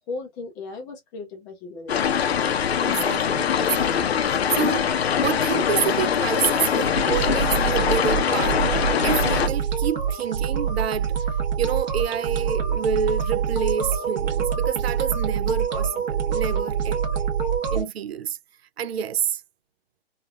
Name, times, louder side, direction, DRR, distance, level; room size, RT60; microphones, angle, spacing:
voice 1, 0.1-1.9 16.5-17.0, left 3 dB, 10° left, 0.4 m, -37 dB
sound 1, 1.9-9.5, left 8 dB, 80° left, 0.6 m, -23 dB
voice 2, 2.8-4.9 5.2-11.2 11.6-17.0 17.7-18.4 18.8-19.4, right 8 dB, 75° right, 0.5 m, -28 dB
sound 2, 6.9-17.8, right 7 dB, 45° right, 1.1 m, -25 dB
3.3 x 2.3 x 2.3 m
hypercardioid pair, 140°, 31 cm